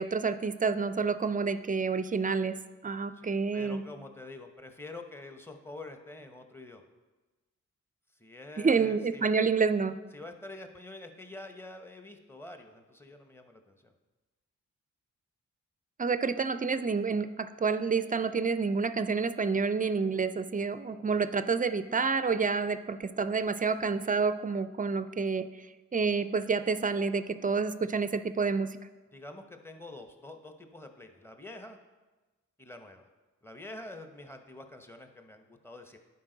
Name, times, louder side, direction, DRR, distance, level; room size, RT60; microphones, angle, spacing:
voice 1, 0.0-2.6 2.8-3.8 8.6-9.9 16.0-25.5 25.9-28.7, right 5 dB, 30° right, 12 dB, 0.4 m, -28 dB
voice 2, 3.1-6.8 8.1-9.3 10.1-13.9 29.1-31.8 32.6-33.1 33.4-36.0, left 2 dB, 10° left, 5 dB, 0.9 m, -46 dB
10.5 x 4.5 x 3.9 m, 1.2 s
cardioid pair, 55°, 30 cm